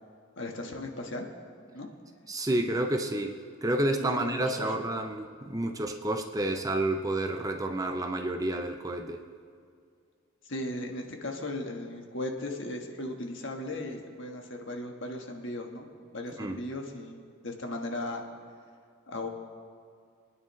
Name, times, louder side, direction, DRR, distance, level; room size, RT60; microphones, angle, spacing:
voice 1, 0.4-1.3 1.7-1.9 2.5-2.6 4.0-4.7 10.5-15.9 16.1-18.2 19.1-19.3, left 1 dB, 55° left, 2 dB, 1.4 m, -37 dB
voice 2, 2.3-9.2 16.4-16.6, right 1 dB, 15° right, 5 dB, 0.5 m, -30 dB
26.5 x 9.8 x 3.2 m, 2.2 s
head